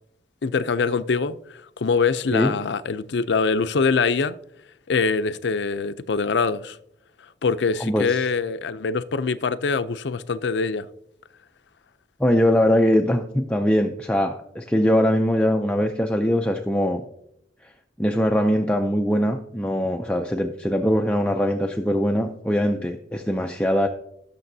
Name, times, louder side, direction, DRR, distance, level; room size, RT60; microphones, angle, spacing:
voice 1, 0.4-4.4 4.9-6.8 7.4-10.9, left 4 dB, 80° left, 0.5 m, -24 dB
voice 2, 7.8-8.3 12.2-17.0 17.6-17.7 18.0-23.9, equal, 5° left, 0.4 m, -22 dB
18.0 x 6.8 x 2.7 m
head